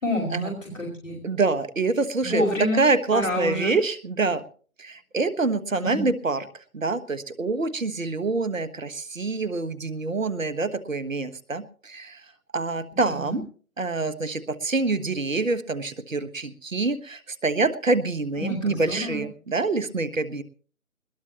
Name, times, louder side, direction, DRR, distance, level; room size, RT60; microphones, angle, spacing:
voice 1, 0.0-1.2 2.2-2.8 3.1-3.7 5.8-6.1 12.9-13.4 18.4-19.2, left 1 dB, 65° left, 0 dB, 5.4 m, -28 dB
voice 2, 1.2-4.4 4.8-12.2 12.5-13.4 13.8-20.4, right 3 dB, 65° right, 14 dB, 1.4 m, -26 dB
20.5 x 19.0 x 3.0 m, 0.42 s
figure-of-eight pair, 160°, 42 cm